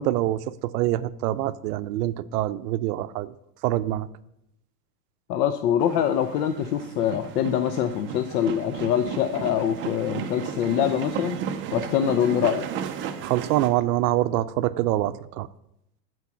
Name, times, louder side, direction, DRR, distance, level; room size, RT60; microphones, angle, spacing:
voice 1, 0.0-3.3 3.6-4.1 13.2-15.5, right 14 dB, 75° right, 0.6 m, -25 dB
voice 2, 5.3-11.4 11.7-12.7, left 9 dB, 75° left, 0.7 m, -24 dB
sound 1, 5.8-13.7, right 7 dB, 25° right, 0.4 m, -34 dB
8.1 x 4.6 x 6.0 m
supercardioid pair, 140°, 48 cm